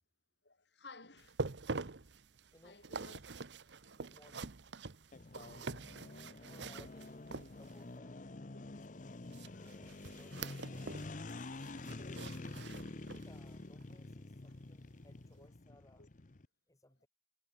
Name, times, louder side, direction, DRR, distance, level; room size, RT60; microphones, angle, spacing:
voice 1, 0.4-1.9 2.6-3.2 3.8-4.0 9.5-9.6 15.4-15.5 16.0-16.1, left 3 dB, 75° left, 6.3 m, -57 dB
sound 1, 1.2-7.9 9.3-11.1 11.4-13.4 13.8-14.0 14.5-14.6, right 3 dB, 80° right, 1.1 m, -45 dB
voice 2, 2.5-3.1 3.9-4.7 6.4-8.3 8.7-8.9 9.5-11.0 12.9-16.1 16.7-17.1, left 1 dB, 20° left, 3.2 m, -64 dB
sound 2, 5.1-16.5, left 2 dB, 45° left, 0.9 m, -48 dB
head